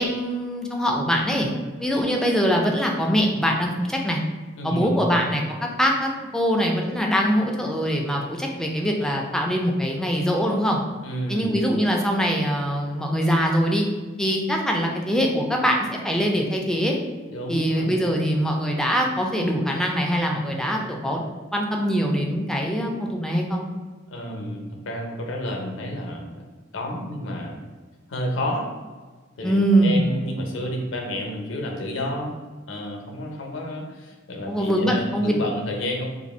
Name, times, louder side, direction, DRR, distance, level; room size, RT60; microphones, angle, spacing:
voice 1, 0.0-1.5 1.8-4.2 4.6-10.8 11.3-13.9 14.2-17.0 17.5-21.2 21.5-23.7 29.4-30.1 34.5-35.3, equal, 5° left, 0 dB, 0.4 m, -23 dB
voice 2, 4.6-5.2 11.0-11.6 17.3-18.1 24.1-26.4 26.7-27.7 28.1-28.7 29.4-32.4 32.7-36.1, equal, 65° left, 1 dB, 0.7 m, -30 dB
2.7 x 2.6 x 4.1 m, 1.3 s
head